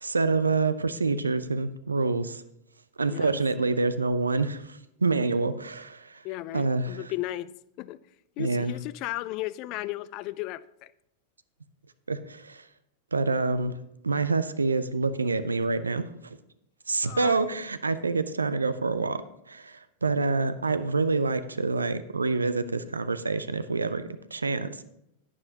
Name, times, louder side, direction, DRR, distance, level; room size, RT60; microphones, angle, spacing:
voice 1, 0.0-2.4 3.0-6.2 6.5-7.0 8.4-8.7 12.1-12.6 13.1-13.7 14.0-16.4 16.9-24.8, right 3 dB, 80° right, 0.5 m, -27 dB
voice 2, 6.2-8.0 8.4-10.9 17.0-17.4, left 17 dB, 45° left, 0.4 m, -35 dB
11.0 x 9.7 x 2.9 m
figure-of-eight pair, 95°, 0 cm